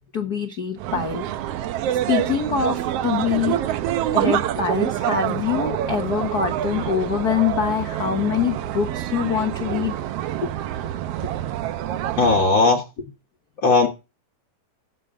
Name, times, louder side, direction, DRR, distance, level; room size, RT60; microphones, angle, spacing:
voice 1, 0.1-1.2 1.9-3.6 4.1-9.9 10.4-10.5 11.2-11.3, left 7 dB, 75° left, 6 dB, 0.8 m, -24 dB
sound 1, 0.8-12.5, right 12 dB, 80° right, 1.4 m, -26 dB
voice 2, 12.2-12.8 13.6-13.9, left 3 dB, 50° left, 3 dB, 1.6 m, -17 dB
16.0 x 7.3 x 3.7 m, 0.28 s
omnidirectional pair, 3.6 m